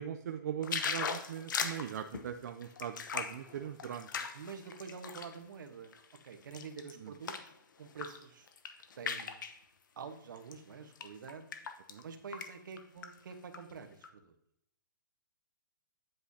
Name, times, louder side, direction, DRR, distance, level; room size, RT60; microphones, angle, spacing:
voice 1, 0.0-4.1 7.0-7.1 11.9-12.0, right 9 dB, 55° right, 6 dB, 0.5 m, -40 dB
sound 1, 0.6-5.4 5.8-7.5 7.9-8.2 8.5-9.6 10.4-10.5 11.0-12.0 12.3-12.5 12.8-13.6 14.0-14.1, left 6 dB, 70° left, 1.0 m, -39 dB
voice 2, 4.3-6.0 6.2-7.5 7.8-8.5 9.0-9.4 10.0-11.4 12.0-14.3, right 6 dB, 70° right, 7 dB, 1.2 m, -47 dB
8.8 x 7.9 x 2.8 m, 0.76 s
hypercardioid pair, 160°, 11 cm